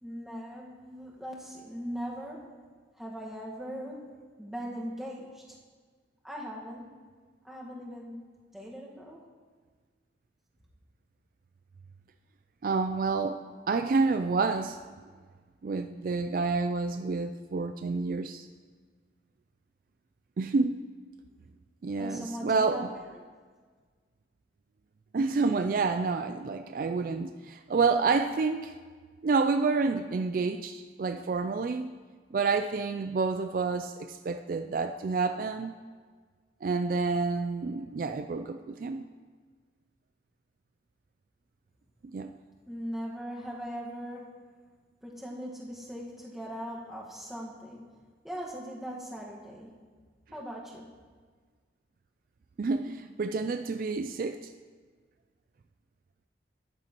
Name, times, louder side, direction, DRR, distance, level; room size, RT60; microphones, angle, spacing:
voice 1, 0.0-2.5 2.9-5.6 6.2-7.0 7.4-9.2 22.0-23.3 42.7-44.4 45.0-47.8 48.2-49.7 50.3-50.9, equal, ahead, -4 dB, 1.5 m, -40 dB
voice 2, 12.6-13.4 13.7-14.8 15.6-18.5 20.4-20.8 21.8-22.9 25.1-28.7 29.2-31.9 32.3-35.7 36.6-39.0 42.1-42.3 52.6-54.5, right 4 dB, 50° right, 8 dB, 0.3 m, -29 dB
13.5 x 10.5 x 3.0 m, 1.5 s
head